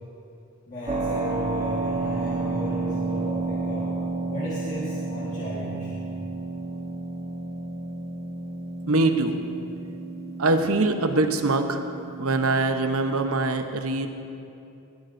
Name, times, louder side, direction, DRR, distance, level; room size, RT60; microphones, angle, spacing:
voice 1, 0.7-3.9 4.3-5.9, equal, 35° left, -7 dB, 1.6 m, -34 dB
Keyboard (musical), 0.9-13.4, right 3 dB, 30° right, 1.1 m, -31 dB
voice 2, 8.9-9.4 10.4-11.8 12.2-14.1, right 2 dB, 85° right, 7 dB, 0.8 m, -23 dB
17.0 x 13.0 x 2.6 m, 2.7 s
head